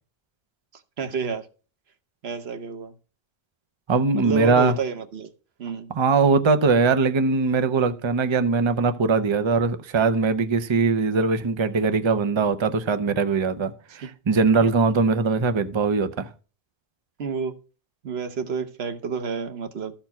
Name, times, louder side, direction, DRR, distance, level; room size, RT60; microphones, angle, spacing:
voice 1, 1.0-1.5 2.2-2.9 4.1-5.3 5.6-5.9 14.0-14.1 17.2-17.5 18.0-19.9, right 5 dB, 85° right, 1.2 m, -29 dB
voice 2, 3.9-4.7 5.9-16.3, right 4 dB, 35° right, 0.6 m, -21 dB
13.0 x 4.4 x 5.7 m
omnidirectional pair, 1.0 m